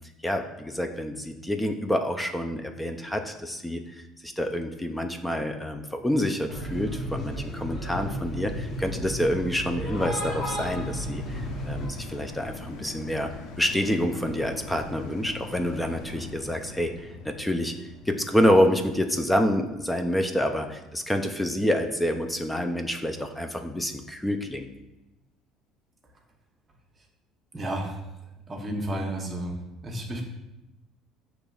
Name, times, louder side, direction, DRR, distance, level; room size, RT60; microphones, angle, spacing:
voice 1, 0.2-11.4 11.7-13.3 13.6-17.7 18.1-24.7, equal, 5° left, 5 dB, 0.4 m, -27 dB
sound 1, 6.5-11.9, equal, 40° left, 0.9 m, -33 dB
sound 2, 10.4-21.1 21.5-21.6, left 3 dB, 75° left, 0.6 m, -43 dB
voice 2, 27.5-28.0 28.5-29.5 29.8-30.2, right 1 dB, 25° right, 1 dB, 0.8 m, -31 dB
6.5 x 3.0 x 2.3 m, 0.97 s
cardioid pair, 120°, 0 cm